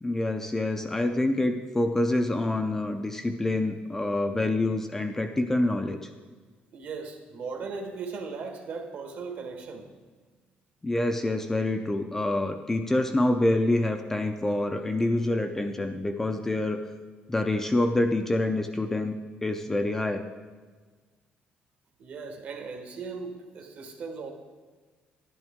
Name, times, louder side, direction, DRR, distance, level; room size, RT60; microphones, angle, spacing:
voice 1, 0.0-6.1 10.8-16.8 17.3-19.1 19.4-20.2, left 2 dB, 10° left, 5 dB, 0.4 m, -26 dB
voice 2, 6.7-9.9 22.0-24.3, right 4 dB, 55° right, 4 dB, 1.4 m, -37 dB
11.5 x 11.0 x 3.6 m, 1.4 s
cardioid pair, 170°, 4 cm